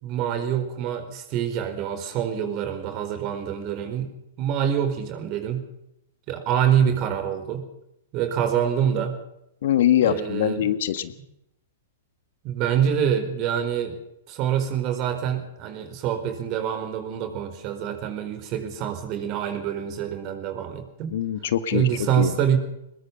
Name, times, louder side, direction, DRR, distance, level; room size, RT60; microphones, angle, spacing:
voice 1, 0.0-4.1 4.4-5.6 6.3-7.6 8.1-9.2 10.0-10.6 12.4-14.0 14.3-21.2 21.7-22.6, right 9 dB, 40° right, 9 dB, 4.5 m, -26 dB
voice 2, 9.6-11.1 21.1-21.9 22.2-22.3, left 11 dB, 60° left, 13 dB, 1.6 m, -22 dB
22.0 x 21.5 x 5.5 m, 0.82 s
figure-of-eight pair, 110°, 0 cm